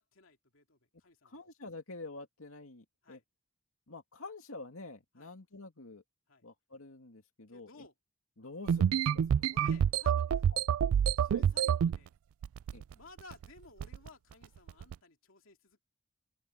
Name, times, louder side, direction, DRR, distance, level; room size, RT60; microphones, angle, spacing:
voice 1, 0.0-1.4 3.0-3.2 5.2-5.3 6.3-6.4 7.5-7.9 9.4-10.6 11.2-12.1 12.9-15.8, left 3 dB, 70° left, 2.7 m, -57 dB
voice 2, 1.2-3.2 3.9-6.0 6.4-7.9 8.4-9.2 10.5-10.6 11.3-11.5 12.7-12.8, left 3 dB, 85° left, 2.3 m, -48 dB
sound 1, 8.7-12.0 12.4-12.9 13.2-13.5 13.8-14.1 14.7-14.9, right 8 dB, 85° right, 0.3 m, -28 dB
open air
head